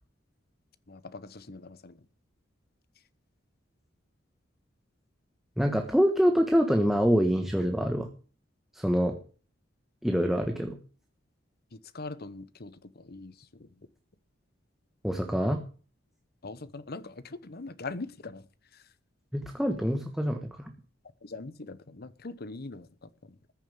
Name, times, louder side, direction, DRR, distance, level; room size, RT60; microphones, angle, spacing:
voice 1, 0.9-2.0 11.7-13.7 16.4-18.4 18.7-18.8 21.2-22.9, left 3 dB, 55° left, 1.0 m, -42 dB
voice 2, 5.6-8.1 8.7-9.1 10.0-10.8 15.0-15.6 19.3-20.7, equal, ahead, 1.3 m, -25 dB
14.5 x 7.2 x 8.8 m
head